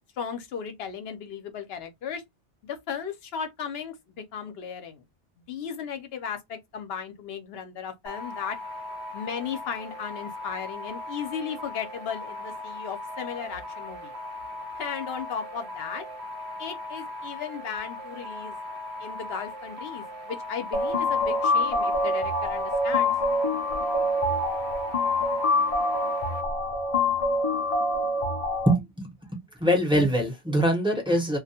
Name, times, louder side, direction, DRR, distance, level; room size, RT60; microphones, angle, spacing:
voice 1, 0.2-2.2 2.6-5.0 5.4-8.6 9.1-14.1 14.8-16.0 16.6-18.6 19.0-23.1, left 7 dB, 65° left, 0.8 m, -36 dB
sound 1, 8.1-26.4, left 2 dB, 70° right, 0.9 m, -39 dB
sound 2, 20.7-28.7, left 2 dB, 40° left, 0.5 m, -25 dB
voice 2, 28.7-31.4, equal, 5° right, 0.7 m, -24 dB
2.3 x 2.2 x 2.7 m
omnidirectional pair, 1.2 m